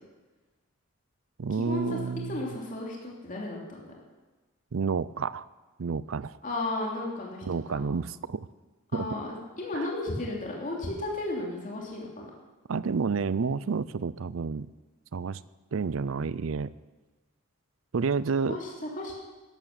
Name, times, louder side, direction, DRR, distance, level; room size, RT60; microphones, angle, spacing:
voice 1, 1.4-2.4 4.7-5.5 5.8-6.4 7.4-8.5 8.9-9.1 9.7-9.9 12.7-14.7 15.1-15.4 15.7-16.7 17.9-18.6, right 5 dB, 70° right, 18 dB, 0.5 m, -30 dB
voice 2, 2.3-3.9 6.4-7.9 8.9-12.2 18.5-19.1, left 2 dB, 35° left, -2 dB, 2.9 m, -34 dB
13.5 x 12.0 x 6.7 m, 1.2 s
head